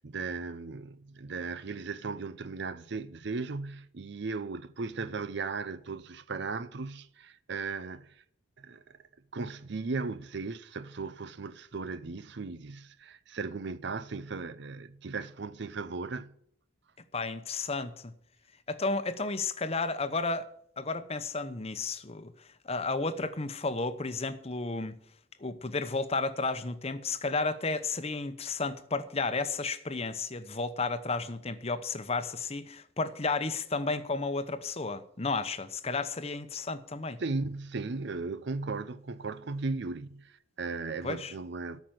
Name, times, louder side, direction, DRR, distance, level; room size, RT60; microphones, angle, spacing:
voice 1, 0.0-8.2 8.6-9.0 9.3-16.3 37.2-41.8, right 4 dB, 60° right, 0.6 m, -37 dB
voice 2, 17.1-18.1 18.7-20.5 20.8-22.3 22.6-24.9 25.4-37.2 41.0-41.3, left 3 dB, 30° left, 0.9 m, -32 dB
13.5 x 6.0 x 9.2 m
head